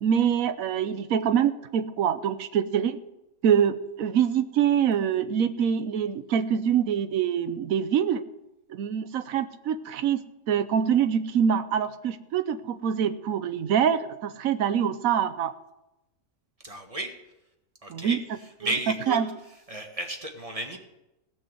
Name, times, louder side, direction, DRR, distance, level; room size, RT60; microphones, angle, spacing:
voice 1, 0.0-3.0 3.4-8.2 8.7-15.5 17.9-18.2 18.6-19.3, right 8 dB, 75° right, 11 dB, 1.2 m, -25 dB
voice 2, 16.6-17.1 17.8-18.2 18.6-19.2 19.7-20.8, right 2 dB, 25° right, 3 dB, 1.7 m, -32 dB
18.0 x 6.2 x 7.7 m, 0.93 s
omnidirectional pair, 1.5 m